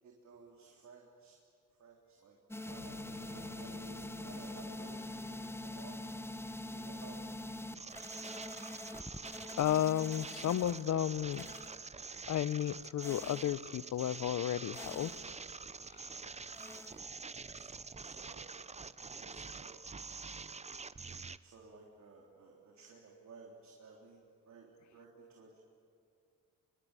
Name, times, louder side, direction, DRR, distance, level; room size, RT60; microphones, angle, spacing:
voice 1, 0.0-1.4 1.8-6.0 6.7-7.2 17.5-17.7 18.0-18.6 19.0-20.4 21.4-25.6, right 4 dB, 60° right, -1 dB, 3.5 m, -57 dB
sound 1, 2.5-10.8 11.3-11.8 13.0-13.5 14.7-15.3 16.5-17.0, left 1 dB, 10° left, 1.1 m, -45 dB
Piano, 2.8-8.3, left 9 dB, 80° left, 1.5 m, -58 dB
sound 2, 7.7-21.4, right 4 dB, 20° right, 0.7 m, -46 dB
voice 2, 9.6-11.5 12.3-15.1 16.0-16.1, left 11 dB, 65° left, 19 dB, 0.7 m, -33 dB
24.0 x 23.5 x 9.1 m, 2.5 s
cardioid pair, 75°, 32 cm